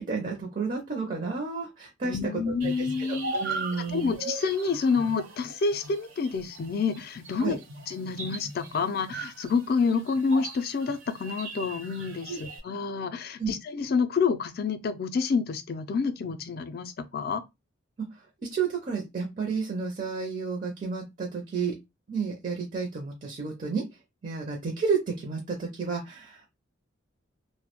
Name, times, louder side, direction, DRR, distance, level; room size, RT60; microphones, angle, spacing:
voice 1, 0.0-2.7 3.0-4.1 7.4-7.6 12.3-12.4 13.4-13.5 18.0-18.3 18.5-21.8 22.1-23.8 24.2-26.5, right 5 dB, 40° right, 0.4 m, -31 dB
voice 2, 2.0-7.6 7.9-17.4, left 5 dB, 50° left, 0.3 m, -28 dB
sound 1, 2.6-12.6, right 3 dB, 70° right, 0.7 m, -39 dB
2.2 x 2.1 x 2.8 m
head